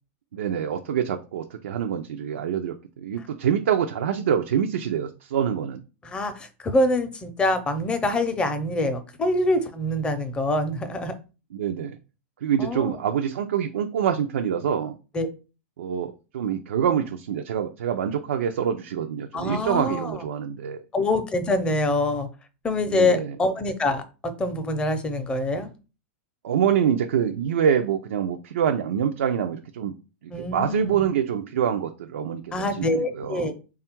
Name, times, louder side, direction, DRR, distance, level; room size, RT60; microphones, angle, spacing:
voice 1, 0.3-5.8 11.5-12.0 12.4-15.0 15.8-20.8 22.9-23.4 26.4-29.9 30.4-33.5, right 8 dB, 85° right, 4 dB, 0.4 m, -25 dB
voice 2, 6.0-11.2 12.6-13.0 15.1-15.3 19.3-20.2 20.9-22.3 22.6-25.7 30.3-31.1 32.5-33.5, left 2 dB, 15° left, 8 dB, 0.6 m, -25 dB
3.4 x 2.3 x 4.4 m, 0.32 s
hypercardioid pair, 130°, 7 cm